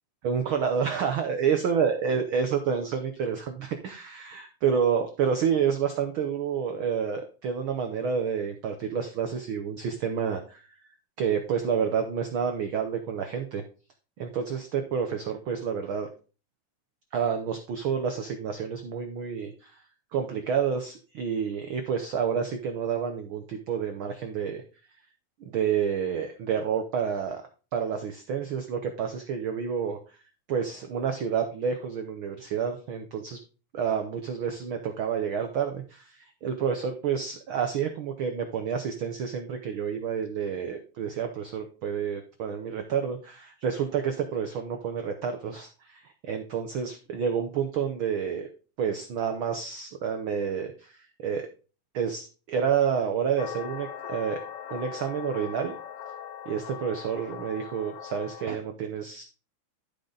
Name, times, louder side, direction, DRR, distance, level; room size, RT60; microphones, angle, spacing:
voice 1, 0.2-10.8 11.2-13.6 14.2-16.1 17.1-19.8 20.1-24.6 25.4-27.4 27.7-30.2 30.5-33.4 33.7-48.5 48.8-51.5 51.9-54.4 54.7-55.7 56.5-59.2, right 7 dB, 80° right, 6 dB, 1.1 m, -29 dB
sound 1, 53.4-58.5, left 9 dB, 70° left, 1.4 m, -40 dB
12.0 x 5.1 x 3.9 m, 0.35 s
omnidirectional pair, 3.4 m